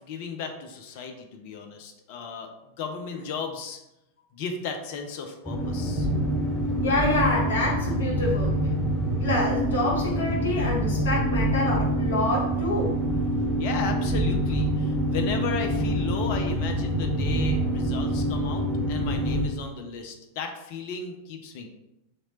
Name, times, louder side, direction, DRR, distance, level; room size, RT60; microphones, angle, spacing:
voice 1, 0.0-2.5 2.8-3.8 4.3-6.1 13.6-21.7, left 5 dB, 45° left, 4 dB, 0.4 m, -35 dB
sound 1, 5.4-19.4, right 1 dB, 5° right, 0.7 m, -26 dB
voice 2, 6.8-8.6 9.2-13.0, left 2 dB, 60° left, -4 dB, 1.2 m, -27 dB
2.9 x 2.8 x 2.7 m, 0.88 s
figure-of-eight pair, 90°, 0 cm